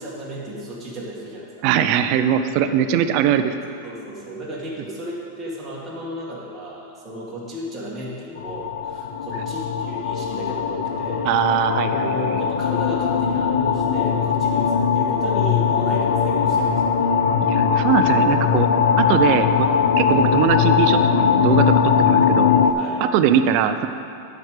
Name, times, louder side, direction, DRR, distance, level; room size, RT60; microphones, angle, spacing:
voice 1, 0.0-1.5 2.6-2.8 3.8-11.3 11.8-17.1 20.0-20.3 22.7-23.0, right 1 dB, 10° right, -6 dB, 1.8 m, -34 dB
voice 2, 1.6-3.6 11.2-12.4 17.3-18.7 19.0-19.7 20.0-22.5 23.0-23.9, right 9 dB, 35° right, 9 dB, 0.4 m, -21 dB
sound 1, 8.4-22.7, left 7 dB, 85° left, 0.6 m, -20 dB
11.5 x 4.8 x 6.5 m, 2.6 s
supercardioid pair, 170°, 0 cm